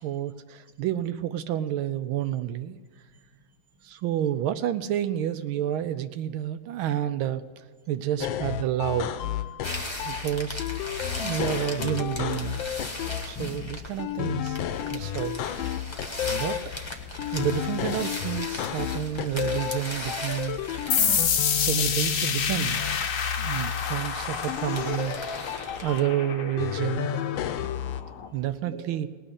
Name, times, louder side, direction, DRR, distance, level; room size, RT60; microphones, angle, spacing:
voice 1, 0.0-2.8 3.8-9.1 10.0-10.7 11.2-12.6 13.2-14.4 14.9-15.4 16.3-16.7 17.3-20.6 21.6-22.8 23.4-25.1 25.5-27.1 28.3-29.1, right 11 dB, 80° right, 11 dB, 1.4 m, -29 dB
voice 2, 3.1-3.6 8.2-8.3 11.0-11.3 27.4-28.9, right 4 dB, 15° right, 2 dB, 1.4 m, -47 dB
sound 1, 8.2-10.2 10.6-13.2 14.0-16.6 17.2-19.8 20.1-23.0 24.5-26.0 26.6-28.0, left 10 dB, 75° left, 1.4 m, -32 dB
sound 2, 9.6-26.0, left 3 dB, 20° left, 0.8 m, -37 dB
sound 3, 20.9-28.3, left 7 dB, 55° left, 0.9 m, -29 dB
18.5 x 6.5 x 9.8 m, 1.5 s
omnidirectional pair, 2.2 m